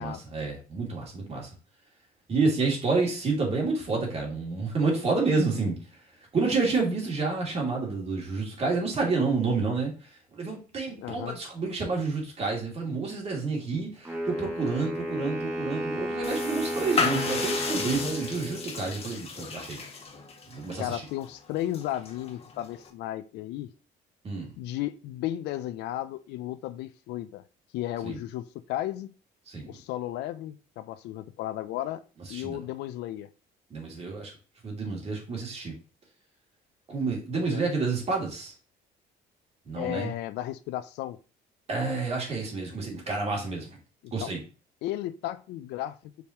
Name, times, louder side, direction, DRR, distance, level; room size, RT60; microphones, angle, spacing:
voice 1, 0.0-1.5 2.3-5.8 6.3-9.9 10.3-19.8 20.5-21.0 24.2-24.5 28.0-28.2 29.5-29.8 32.3-32.6 33.7-34.3 34.6-35.7 36.9-38.5 39.7-40.1 41.7-43.7 44.1-44.4, right 3 dB, 35° right, 2.8 m, -29 dB
voice 2, 10.9-11.4 20.8-23.7 24.6-27.4 27.7-29.1 29.7-32.0 32.3-33.3 37.3-37.6 39.8-41.2 44.0-44.3 44.8-46.1, left 13 dB, 85° left, 0.5 m, -34 dB
Wind instrument woodwind instrument, 14.0-19.1, equal, 15° right, 2.2 m, -33 dB
sound 1, 16.2-22.9, left 4 dB, 35° left, 1.4 m, -34 dB
7.1 x 4.8 x 3.0 m
cardioid pair, 110°, 17 cm